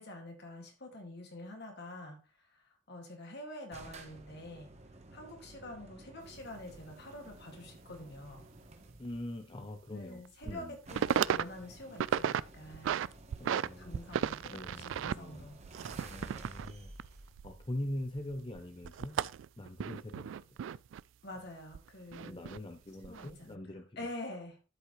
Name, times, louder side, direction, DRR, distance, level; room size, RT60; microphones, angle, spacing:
voice 1, 0.0-4.7 5.1-8.5 9.9-13.0 13.8-15.6 21.2-22.5 23.1-23.6 24.0-24.6, left 1 dB, 60° left, 2.3 m, -47 dB
sound 1, 3.7-9.2 10.2-10.3 10.5-10.6 10.9-18.3, right 2 dB, 35° right, 1.2 m, -53 dB
sound 2, 6.2-6.3 6.7-6.8 9.0-9.2 9.6-9.7 10.2-10.6 10.9-11.4 11.8-12.4 12.7-13.7 13.9-17.9 18.2-21.0 21.7-22.6 23.0-23.3, right 8 dB, 70° right, 0.3 m, -34 dB
voice 2, 9.0-10.8 13.4-14.0 14.4-15.5 16.0-16.9 17.4-19.2 19.6-20.6 22.2-24.1, left 1 dB, 25° left, 0.7 m, -43 dB
12.0 x 5.4 x 3.1 m
head